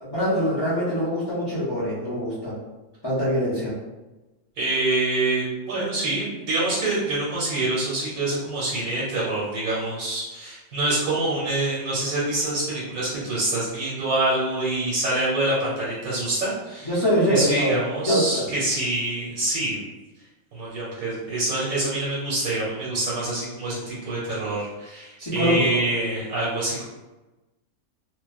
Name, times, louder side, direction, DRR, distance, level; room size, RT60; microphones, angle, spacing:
voice 1, 0.0-2.5 3.0-3.7 16.9-17.8 18.0-18.4 25.2-25.8, equal, 40° left, -10 dB, 0.3 m, -23 dB
voice 2, 4.6-16.9 17.3-19.8 20.5-26.9, right 2 dB, 80° right, -7 dB, 1.2 m, -26 dB
2.4 x 2.2 x 2.3 m, 1.1 s
omnidirectional pair, 1.5 m